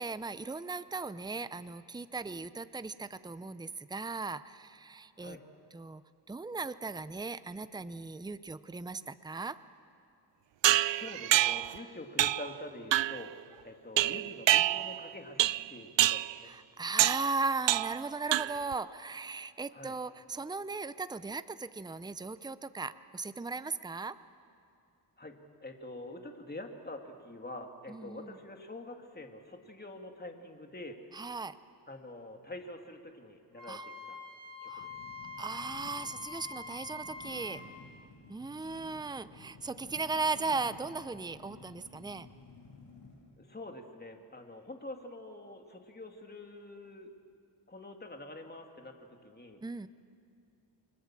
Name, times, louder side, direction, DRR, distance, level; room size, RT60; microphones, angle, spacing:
voice 1, 0.0-5.4 5.7-6.0 6.3-9.6 16.4-24.2 27.9-28.3 31.1-31.6 33.7-33.8 34.7-34.9 35.4-37.6 38.3-42.3 49.6-49.9, right 3 dB, 10° right, 13 dB, 0.6 m, -37 dB
sound 1, 10.6-11.8 12.2-12.5 12.9-13.3 14.0-15.0 15.4-15.7 16.0-16.3 17.0-17.3 17.7-18.0 18.3-18.7, right 14 dB, 80° right, 0.5 m, -27 dB
voice 2, 10.9-13.3 13.6-16.5 19.7-20.0 25.2-25.4 25.6-31.0 31.9-34.2 34.6-35.0 43.4-47.1 47.7-49.6, left 2 dB, 20° left, 3 dB, 2.5 m, -46 dB
Wind instrument woodwind instrument, 33.5-37.7, left 3 dB, 35° right, 2.9 m, -45 dB
sound 2, 34.7-43.3, left 3 dB, 70° left, 7.9 m, -53 dB
29.0 x 23.5 x 7.5 m, 2.5 s
wide cardioid pair, 100°, 43 cm